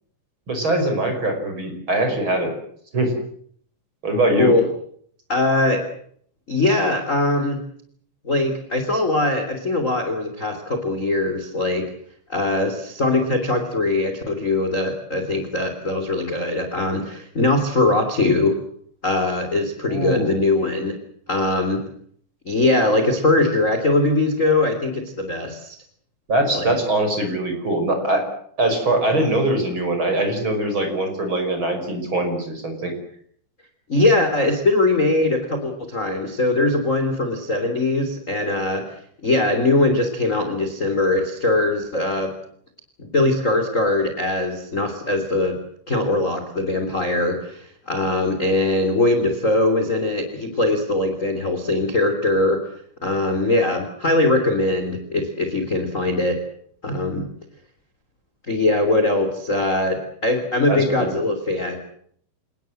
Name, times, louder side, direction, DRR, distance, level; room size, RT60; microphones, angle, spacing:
voice 1, 0.5-2.5 2.9-3.1 4.0-4.5 19.9-20.3 26.3-28.2 28.6-32.9 60.7-61.2, right 1 dB, 25° right, 5 dB, 6.3 m, -22 dB
voice 2, 5.3-5.8 6.5-7.6 8.2-11.9 12.3-18.5 19.0-20.9 21.3-21.8 22.4-25.8 26.5-26.7 33.9-38.9 39.2-42.3 43.0-45.6 45.9-52.6 53.0-56.4 56.8-57.2 58.5-61.7, left 2 dB, 20° left, 6 dB, 2.8 m, -21 dB
28.5 x 19.0 x 7.8 m, 0.63 s
omnidirectional pair, 5.1 m